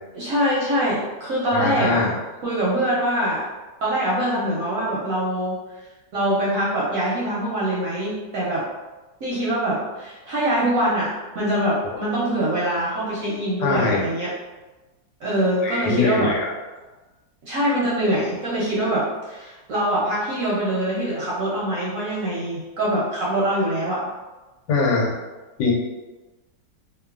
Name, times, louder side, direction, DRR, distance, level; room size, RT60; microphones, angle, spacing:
voice 1, 0.1-2.1 2.4-3.4 3.8-5.5 6.1-8.6 9.2-14.3 15.2-16.3 17.4-24.0, right 1 dB, 70° right, -7 dB, 0.8 m, -23 dB
voice 2, 1.5-2.1 13.6-14.0 15.6-16.5 24.7-25.1 25.6-25.7, left 3 dB, 90° left, -1 dB, 1.3 m, -21 dB
3.0 x 2.1 x 2.3 m, 1.2 s
omnidirectional pair, 1.9 m